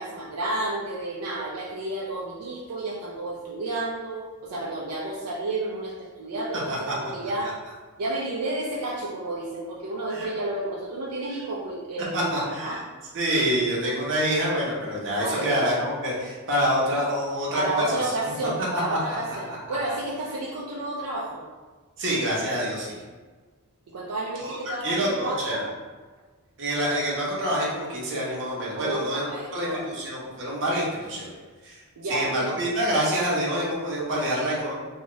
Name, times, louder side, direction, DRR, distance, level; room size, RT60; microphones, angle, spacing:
voice 1, 0.0-7.5 8.0-12.8 15.2-15.6 17.5-21.4 23.9-25.7 28.8-29.8 32.0-32.5, right 2 dB, 80° right, -5 dB, 0.5 m, -31 dB
voice 2, 12.1-12.8 13.1-18.3 18.9-19.0 19.5-19.8 22.0-23.0 24.4-24.6 24.8-25.6 26.6-29.2 29.5-31.3 31.6-31.8 32.1-34.7, equal, 55° right, -5 dB, 0.8 m, -26 dB
2.7 x 2.4 x 3.0 m, 1.4 s
head